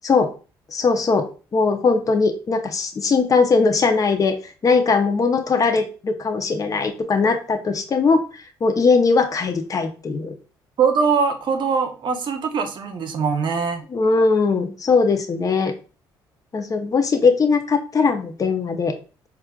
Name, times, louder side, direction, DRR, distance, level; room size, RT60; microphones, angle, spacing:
voice 1, 0.7-1.2 1.5-10.3 13.9-15.7 16.5-18.9, left 4 dB, 35° left, 7 dB, 0.6 m, -20 dB
voice 2, 10.8-13.8, right 5 dB, 55° right, 6 dB, 0.7 m, -22 dB
4.3 x 2.5 x 2.3 m, 0.35 s
supercardioid pair, 65°, 10 cm